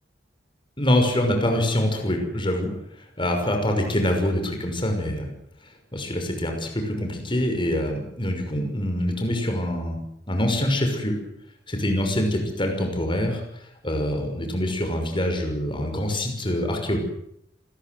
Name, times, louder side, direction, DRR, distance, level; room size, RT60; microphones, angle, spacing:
voice 1, 0.8-2.7 3.2-5.3 5.9-10.0 10.3-11.2 11.7-13.4 13.8-17.0, left 1 dB, 30° left, 4 dB, 6.0 m, -25 dB
28.0 x 21.0 x 7.9 m, 0.74 s
head